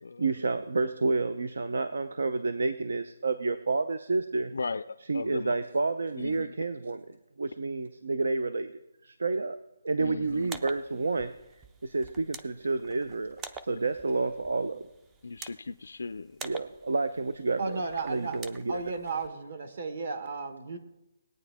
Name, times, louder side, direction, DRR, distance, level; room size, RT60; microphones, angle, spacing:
voice 1, 0.2-4.5 5.0-7.1 7.4-9.6 9.8-11.3 11.8-13.4 13.6-14.8 16.4-18.9, right 3 dB, 85° right, 12 dB, 0.6 m, -30 dB
voice 2, 4.5-5.5 6.2-6.5 10.0-10.5 15.2-16.3, left 4 dB, 80° left, 10 dB, 0.4 m, -37 dB
sound 1, 10.3-19.3, right 4 dB, 10° right, 0.3 m, -48 dB
voice 3, 17.6-18.4 18.7-20.8, right 4 dB, 50° right, 8 dB, 1.2 m, -34 dB
19.0 x 9.1 x 3.5 m, 0.91 s
hypercardioid pair, 175°, 0 cm